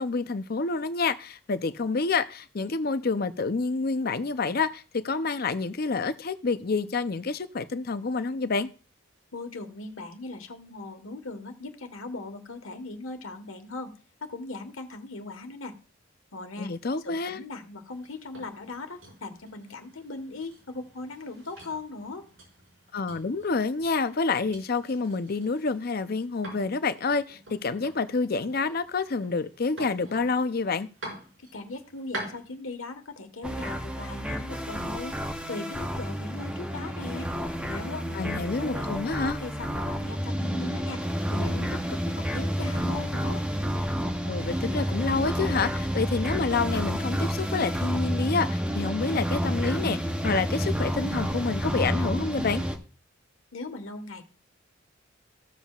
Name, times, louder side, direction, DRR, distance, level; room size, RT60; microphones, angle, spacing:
voice 1, 0.0-8.7 16.6-17.4 22.9-30.9 38.1-39.4 44.2-52.6, left 4 dB, 50° left, 0.6 m, -28 dB
voice 2, 9.3-13.9 14.2-15.8 16.3-22.3 31.5-35.2 35.5-37.3 37.7-41.0 41.3-43.4 53.5-54.2, left 2 dB, 85° left, 1.4 m, -39 dB
sound 1, 17.9-32.6, right 1 dB, 80° right, 5.2 m, -46 dB
sound 2, 33.4-52.8, equal, 5° right, 0.8 m, -30 dB
15.0 x 7.4 x 2.4 m
head